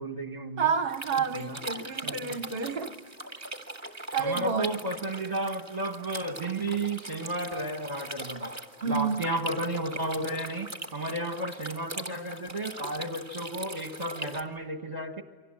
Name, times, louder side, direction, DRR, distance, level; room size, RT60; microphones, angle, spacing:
voice 1, 0.0-0.7 1.3-1.6 2.0-2.4 4.2-15.2, right 1 dB, 35° right, 1.5 m, -33 dB
voice 2, 0.6-3.0 4.1-4.8 8.8-9.2, right 5 dB, 50° right, 1.1 m, -29 dB
sound 1, 0.9-14.4, right 1 dB, 15° right, 1.8 m, -41 dB
29.0 x 24.5 x 7.7 m
omnidirectional pair, 1.3 m